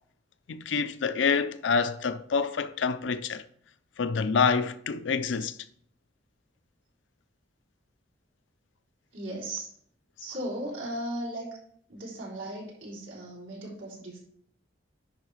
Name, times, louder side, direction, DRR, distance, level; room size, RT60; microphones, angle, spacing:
voice 1, 0.5-3.4 4.0-5.6, left 5 dB, 75° left, 0.5 m, -27 dB
voice 2, 9.1-9.7 10.2-11.5 11.9-14.2, right 1 dB, 80° right, 3.7 m, -36 dB
10.5 x 3.9 x 4.8 m
head